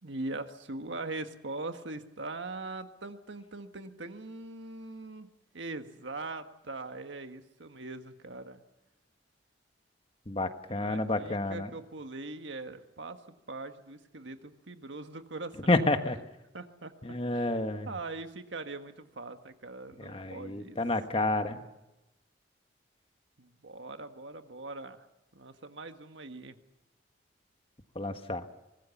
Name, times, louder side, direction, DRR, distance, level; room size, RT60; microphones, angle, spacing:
voice 1, 0.0-5.3 5.5-8.6 10.8-13.2 13.5-15.7 16.5-17.5 17.8-20.8 23.4-25.1 25.3-26.6, right 2 dB, 80° right, 8 dB, 1.6 m, -41 dB
voice 2, 10.3-11.7 15.7-16.2 17.0-17.9 20.0-21.6 27.9-28.4, left 2 dB, 30° left, 8 dB, 1.4 m, -29 dB
24.5 x 19.5 x 7.1 m, 0.97 s
head